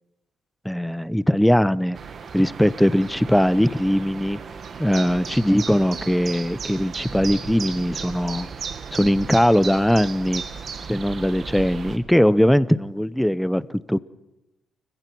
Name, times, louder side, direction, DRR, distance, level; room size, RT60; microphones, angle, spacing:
voice 1, 0.6-2.0 2.3-4.4 4.8-8.5 8.9-10.4 10.9-14.0, equal, 5° left, 17 dB, 0.7 m, -20 dB
sound 1, 1.9-12.0, right 5 dB, 50° right, 1.9 m, -35 dB
29.5 x 15.0 x 6.1 m, 0.97 s
cardioid pair, 90°, 0 cm